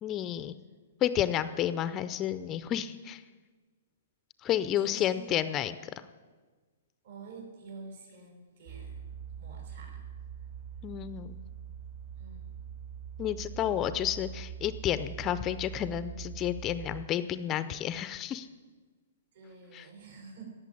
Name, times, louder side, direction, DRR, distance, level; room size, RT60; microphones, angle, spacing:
voice 1, 0.0-0.6 1.0-3.2 4.4-5.9 10.8-11.4 13.2-18.5 19.7-19.8, left 11 dB, 20° left, 13 dB, 0.5 m, -31 dB
voice 2, 4.7-5.3 7.0-9.1 9.4-10.5 12.2-12.6 19.3-20.4, right 4 dB, 65° right, 1 dB, 6.3 m, -49 dB
sound 1, 8.7-17.1, right 8 dB, 50° right, 3.3 m, -43 dB
17.0 x 6.8 x 9.9 m, 1.4 s
hypercardioid pair, 150°, 0 cm